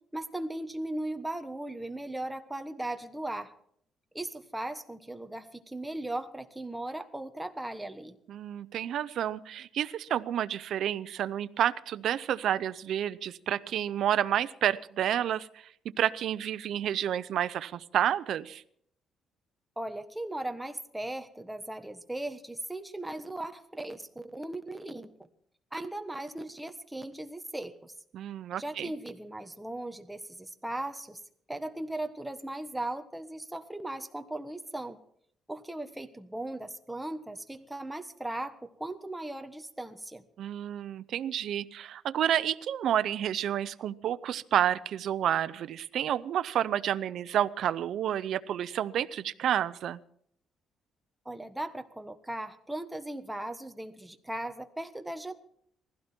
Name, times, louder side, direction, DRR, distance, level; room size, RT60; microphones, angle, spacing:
voice 1, 0.1-3.5 4.1-8.2 19.8-25.1 25.7-27.9 28.6-31.2 31.5-35.0 35.5-40.2 51.2-55.3, right 1 dB, 5° right, 7 dB, 1.3 m, -38 dB
voice 2, 8.3-15.7 16.0-18.6 28.1-28.9 40.4-50.0, right 10 dB, 65° right, 13 dB, 0.7 m, -30 dB
20.0 x 15.5 x 4.5 m, 0.67 s
cardioid pair, 140°, 0 cm